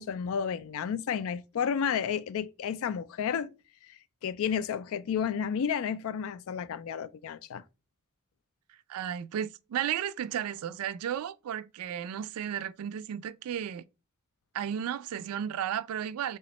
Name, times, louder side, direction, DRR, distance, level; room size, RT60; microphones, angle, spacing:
voice 1, 0.0-3.5 4.2-7.6, left 7 dB, 70° left, 0.3 m, -31 dB
voice 2, 8.9-13.8 14.5-16.4, right 9 dB, 75° right, 0.3 m, -34 dB
3.4 x 3.0 x 2.8 m
head